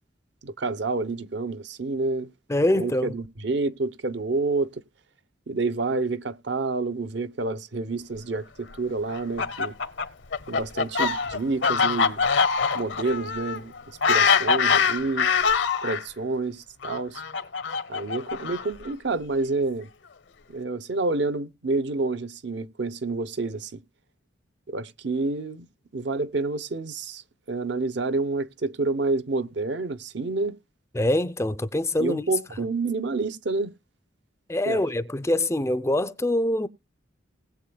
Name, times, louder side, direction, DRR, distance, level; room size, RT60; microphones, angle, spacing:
voice 1, 0.4-2.3 2.7-4.8 5.5-9.7 10.5-12.2 12.7-15.3 15.8-17.2 17.9-19.9 20.5-23.8 24.7-25.7 25.9-27.2 27.5-30.6 32.0-33.7 34.7-34.8, right 3 dB, 65° right, 0.8 m, -28 dB
voice 2, 2.5-3.1 30.9-32.2 34.5-36.7, left 1 dB, 15° left, 0.4 m, -24 dB
Fowl, 9.1-16.0 16.8-18.9, left 5 dB, 80° left, 0.8 m, -24 dB
19.5 x 7.7 x 2.2 m
head